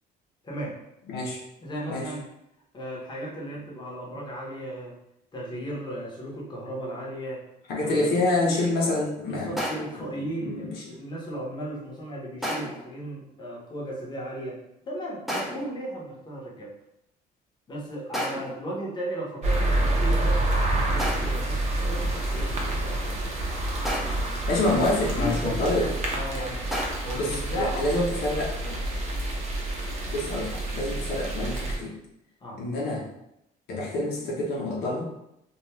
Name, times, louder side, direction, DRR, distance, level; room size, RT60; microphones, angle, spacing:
voice 1, 0.4-0.8 1.6-2.2 2.7-5.0 5.3-7.4 7.7-8.9 9.2-14.6 14.9-16.7 17.7-20.4 20.8-23.3 24.7-28.3 28.6-28.8 32.4-32.6, right 1 dB, 25° left, -4 dB, 0.9 m, -36 dB
voice 2, 1.1-1.4 1.9-2.1 7.7-9.5 10.4-10.7 24.5-25.9 27.1-28.5 30.1-31.9 32.6-33.0 33.7-35.1, left 2 dB, 80° left, -2 dB, 0.6 m, -27 dB
sound 1, 9.6-10.1 12.4-12.9 15.3-15.8 18.1-18.6 21.0-21.5 23.9-24.4 26.7-26.9, equal, ahead, 0.6 m, -32 dB
sound 2, 19.4-31.8, right 1 dB, 40° right, 0.7 m, -28 dB
2.4 x 2.3 x 2.9 m, 0.82 s
cardioid pair, 110°, 17 cm